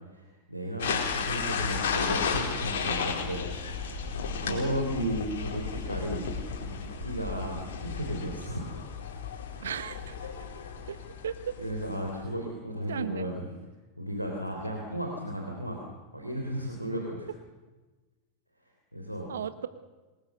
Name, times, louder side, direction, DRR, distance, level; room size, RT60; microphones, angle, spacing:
voice 1, 0.1-3.4 4.4-6.2 6.6-6.7 7.0-8.8 11.6-13.5 14.0-15.8 16.1-17.3 18.9-19.3, equal, 90° right, 1 dB, 3.6 m, -34 dB
sound 1, 0.8-12.2, left 6 dB, 55° left, 4.5 m, -34 dB
voice 2, 9.6-10.1 10.9-11.0 11.2-11.5 12.9-13.3 19.3-19.7, right 8 dB, 65° right, 12 dB, 1.4 m, -35 dB
26.0 x 20.5 x 6.8 m, 1.2 s
figure-of-eight pair, 90°, 0 cm